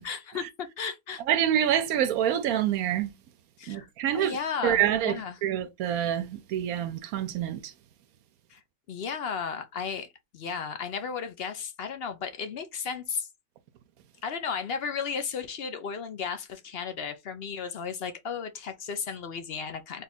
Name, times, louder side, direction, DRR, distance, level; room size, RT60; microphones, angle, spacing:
voice 1, 0.0-1.2 3.6-5.3 8.5-8.6 8.9-13.3 14.2-20.0, left 6 dB, 55° left, 0.7 m, -34 dB
voice 2, 1.3-3.1 3.7-4.4 4.6-7.7, right 10 dB, 90° right, 1.1 m, -27 dB
3.6 x 2.3 x 4.1 m
omnidirectional pair, 1.5 m